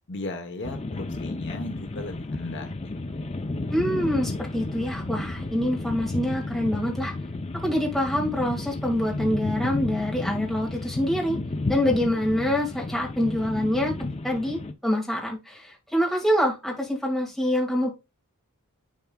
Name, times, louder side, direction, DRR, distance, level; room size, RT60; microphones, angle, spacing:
voice 1, 0.1-2.7, left 2 dB, 55° left, 1.0 m, -36 dB
sound 1, 0.6-14.7, left 2 dB, 30° left, 0.6 m, -32 dB
voice 2, 3.7-7.1 7.5-11.4 11.7-13.9 14.2-17.9, left 1 dB, ahead, 2.2 m, -25 dB
10.5 x 4.6 x 2.3 m
head